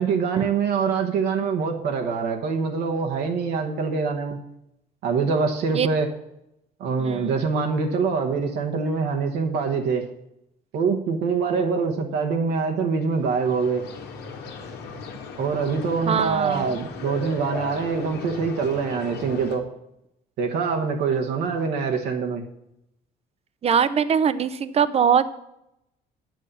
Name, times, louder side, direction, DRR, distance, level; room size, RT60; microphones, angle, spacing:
voice 1, 0.0-4.4 5.0-6.1 6.8-10.0 10.7-13.8 15.4-19.6 20.4-22.4, right 5 dB, 75° right, 3 dB, 1.2 m, -24 dB
voice 2, 7.0-7.3 16.1-16.8 23.6-25.3, right 7 dB, 40° right, 15 dB, 0.6 m, -22 dB
sound 1, 13.1-19.6, left 5 dB, 80° left, 1.6 m, -37 dB
8.7 x 6.3 x 6.8 m, 0.83 s
cardioid pair, 110°, 17 cm